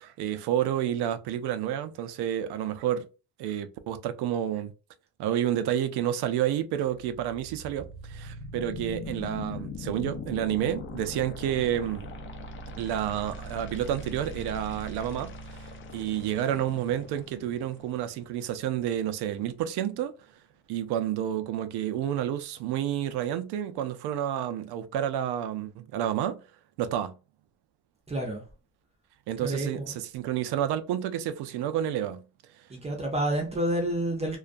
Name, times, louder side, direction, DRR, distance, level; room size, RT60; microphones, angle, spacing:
voice 1, 0.0-3.1 3.4-4.7 5.2-12.1 12.8-15.7 15.9-20.1 20.7-26.4 26.8-27.1 29.3-32.2, right 10 dB, 80° right, 0.5 m, -30 dB
sound 1, 6.8-18.8, left 1 dB, 30° left, 0.4 m, -41 dB
voice 2, 28.1-28.4 29.4-29.9 32.7-34.4, right 1 dB, 15° right, 0.5 m, -29 dB
2.3 x 2.1 x 2.5 m
cardioid pair, 140°, 39 cm